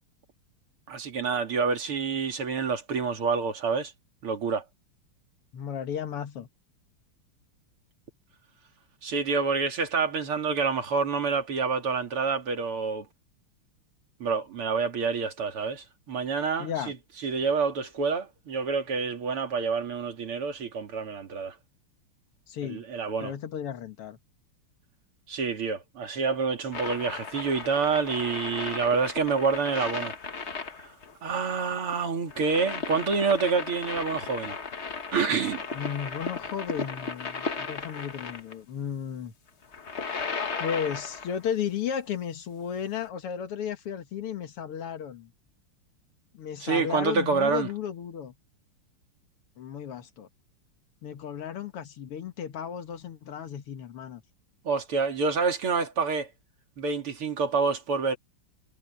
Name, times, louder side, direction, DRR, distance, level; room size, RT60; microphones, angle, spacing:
voice 1, 0.9-3.9 4.2-4.6 9.0-13.1 14.2-16.7 17.2-21.5 22.7-23.3 25.3-30.1 31.2-34.6 35.1-35.6 46.6-47.7 54.6-56.3 56.8-58.2, right 5 dB, 75° right, 3.4 m, -27 dB
voice 2, 5.5-6.5 16.6-16.9 22.5-22.8 23.2-24.2 35.7-39.3 40.6-45.3 46.3-48.3 49.6-50.3 51.0-54.2, left 8 dB, 85° left, 2.4 m, -34 dB
sound 1, 26.7-38.5 39.6-41.5 43.0-43.1, left 4 dB, 35° left, 1.4 m, -36 dB
omnidirectional pair, 2.4 m